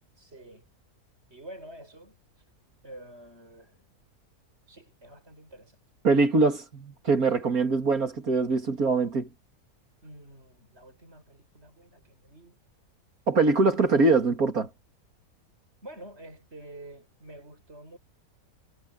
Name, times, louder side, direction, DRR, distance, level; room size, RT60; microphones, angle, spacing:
voice 1, 0.1-0.7 1.3-2.4 2.8-3.9 4.7-5.8 10.0-12.6 15.8-18.0, right 1 dB, 45° right, 7.9 m, -48 dB
voice 2, 6.0-9.3 13.3-14.7, right 3 dB, 70° right, 3.1 m, -23 dB
omnidirectional pair, 1.6 m